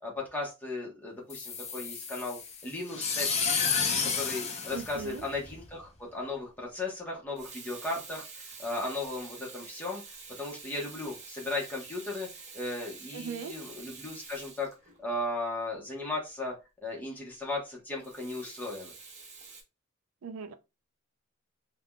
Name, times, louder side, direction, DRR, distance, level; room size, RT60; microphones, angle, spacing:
voice 1, 0.0-3.8 4.0-10.0 10.4-12.3 12.5-14.7 15.0-16.5 16.8-18.9, left 2 dB, 10° left, 1.0 m, -36 dB
sound 1, 1.3-5.7, left 5 dB, 30° left, 0.6 m, -31 dB
voice 2, 4.7-5.2 13.1-13.5 20.2-20.5, right 6 dB, 75° right, 0.4 m, -39 dB
Water tap faucet / Sink (filling or washing), 7.1-15.3 18.0-19.6, right 4 dB, 35° right, 0.7 m, -48 dB
3.5 x 2.3 x 2.2 m
head